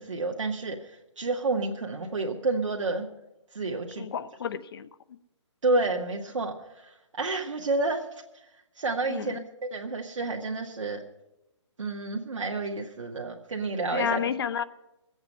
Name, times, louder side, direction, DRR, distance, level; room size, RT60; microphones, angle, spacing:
voice 1, 0.0-3.1 3.5-4.1 5.6-8.4 8.7-11.0 11.8-14.2, right 3 dB, 80° right, 0 dB, 1.3 m, -30 dB
voice 2, 4.0-4.9 9.1-9.4 13.9-14.6, left 8 dB, 50° left, 14 dB, 0.6 m, -31 dB
21.0 x 8.0 x 5.4 m, 0.94 s
hypercardioid pair, 150°, 16 cm